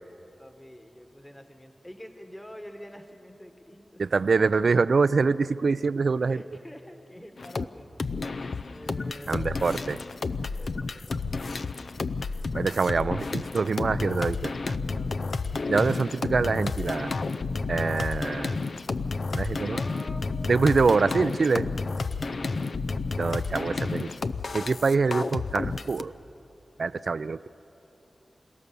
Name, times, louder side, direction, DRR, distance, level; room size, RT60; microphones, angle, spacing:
voice 1, 0.4-4.0 6.2-7.9 8.6-9.9 10.5-11.6 14.9-15.4 15.9-16.3 19.5-20.3, equal, 15° left, 5 dB, 1.5 m, -47 dB
voice 2, 4.0-6.4 9.3-10.0 12.5-14.5 15.7-17.1 17.7-18.6 19.3-19.8 20.5-21.7 23.2-24.1 24.5-26.1 26.8-27.5, right 4 dB, 70° right, 15 dB, 0.4 m, -25 dB
sound 1, 7.4-7.7 8.0-26.0, left 4 dB, 70° left, 0.6 m, -31 dB
28.0 x 17.5 x 6.9 m, 3.0 s
wide cardioid pair, 70°, 0 cm